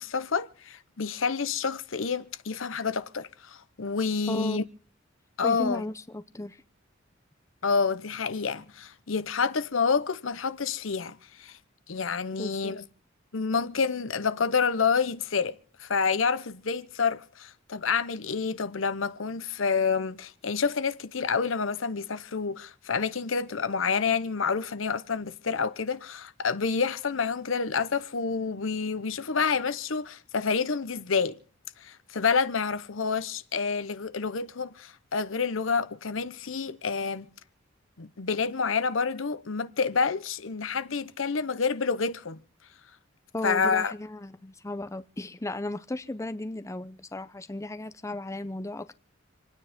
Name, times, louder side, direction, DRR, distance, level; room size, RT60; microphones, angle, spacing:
voice 1, 0.0-4.6 5.4-5.9 7.6-11.6 11.9-12.8 13.3-31.4 31.8-37.3 38.0-42.4 43.4-43.9, left 5 dB, 75° left, 0.9 m, -28 dB
voice 2, 4.3-4.6 5.4-6.6 12.4-12.8 43.3-49.0, left 2 dB, 15° left, 0.6 m, -35 dB
27.5 x 9.7 x 3.6 m
head